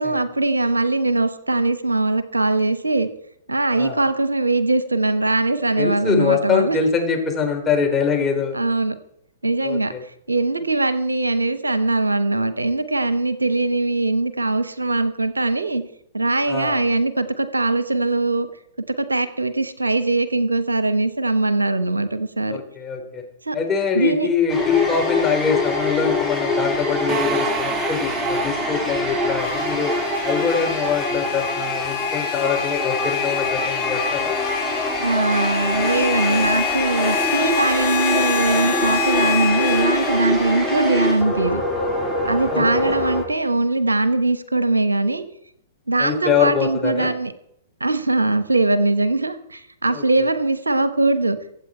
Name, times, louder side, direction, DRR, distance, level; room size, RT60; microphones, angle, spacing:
voice 1, 0.0-3.1 3.5-6.8 8.5-9.0 9.4-9.9 10.3-15.8 16.1-18.5 18.9-22.6 23.4-23.6 23.9-24.3 35.0-41.6 42.2-45.2 45.9-47.3 47.8-51.4, right 2 dB, 85° right, 13 dB, 1.0 m, -21 dB
voice 2, 5.8-8.6 9.6-10.0 16.5-16.8 22.5-23.2 23.5-29.9 30.2-34.3 42.5-43.0 46.0-47.1 49.9-50.0, left 6 dB, 15° left, 1 dB, 3.9 m, -23 dB
sound 1, 24.5-43.2, left 1 dB, 5° right, 4.0 m, -24 dB
sound 2, 27.1-30.8, right 7 dB, 25° right, 1.4 m, -31 dB
sound 3, 29.4-40.2, left 10 dB, 60° left, 5.5 m, -27 dB
24.0 x 8.1 x 4.4 m, 0.72 s
figure-of-eight pair, 110°, 0 cm